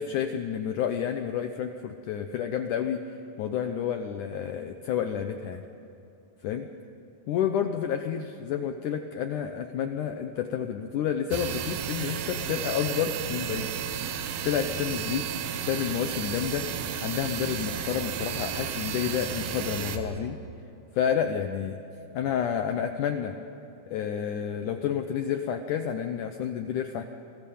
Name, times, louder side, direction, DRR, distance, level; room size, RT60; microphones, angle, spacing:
voice 1, 0.0-3.0 3.4-5.6 6.4-6.7 7.3-13.7 14.4-20.4 20.9-21.8 22.1-23.4 23.9-27.0, left 8 dB, 80° left, 6 dB, 1.8 m, -30 dB
sound 1, 11.3-20.0, right 8 dB, 70° right, 2.9 m, -33 dB
29.5 x 20.0 x 8.5 m, 2.9 s
omnidirectional pair, 4.9 m